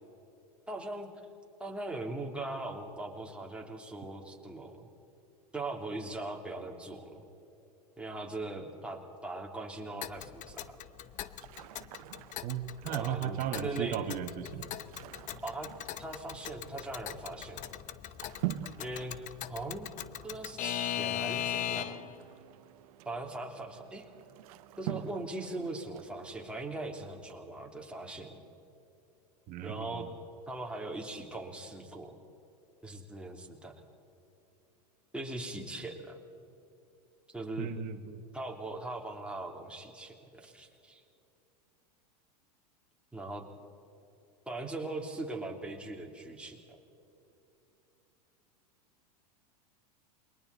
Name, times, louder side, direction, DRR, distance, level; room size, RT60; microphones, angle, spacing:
voice 1, 0.7-1.1 1.6-4.9 5.5-7.3 8.0-10.7 12.9-14.0 15.4-15.7 16.0-17.8 18.8-19.1 19.5-19.9 20.2-22.1 23.0-24.1 24.8-28.4 29.6-30.1 30.5-32.2 32.8-33.7 35.1-36.2 37.3-37.7 38.3-41.0 43.1-43.4 44.5-46.8, right 2 dB, 5° right, 0 dB, 3.3 m, -40 dB
Alarm / Clock, 10.0-22.2, left 12 dB, 40° left, 0.9 m, -39 dB
sound 1, 10.5-27.3, right 14 dB, 65° right, 1.1 m, -46 dB
voice 2, 12.4-14.7 29.5-30.1 37.6-38.2, right 9 dB, 45° right, 7 dB, 1.6 m, -36 dB
28.5 x 23.0 x 4.2 m, 2.9 s
hypercardioid pair, 100°, 20 cm